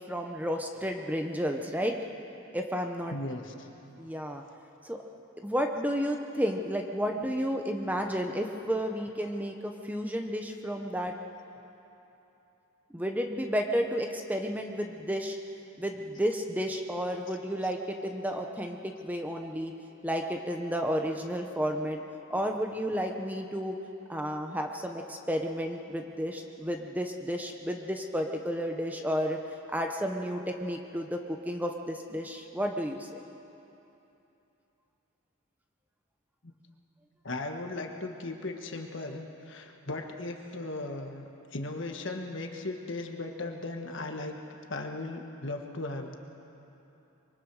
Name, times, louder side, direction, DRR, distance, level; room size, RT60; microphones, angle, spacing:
voice 1, 0.0-2.0 2.5-3.1 4.0-4.4 4.8-5.0 5.4-11.1 12.9-15.4 15.8-19.7 20.0-22.0 22.3-23.8 24.1-29.4 29.7-33.2, equal, 5° right, 3 dB, 0.8 m, -32 dB
voice 2, 3.1-3.7 36.4-36.5 37.2-44.4 44.7-46.1, left 2 dB, 55° left, 3 dB, 1.6 m, -37 dB
25.0 x 23.5 x 4.8 m, 3.0 s
head